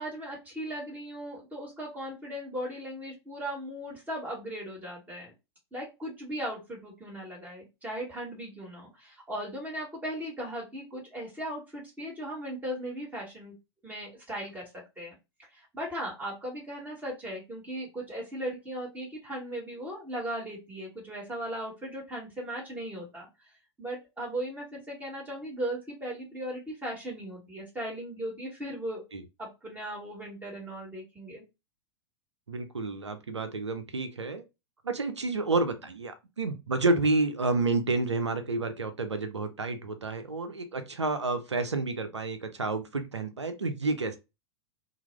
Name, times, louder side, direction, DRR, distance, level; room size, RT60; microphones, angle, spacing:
voice 1, 0.0-5.3 5.7-13.5 13.8-14.7 15.0-15.1 15.5-23.3 23.8-29.0 29.4-31.4, right 1 dB, 10° right, 1.1 m, -37 dB
voice 2, 32.5-34.4 34.8-44.2, right 3 dB, 80° right, 0.5 m, -30 dB
2.3 x 2.0 x 3.1 m
figure-of-eight pair, 90°, 14 cm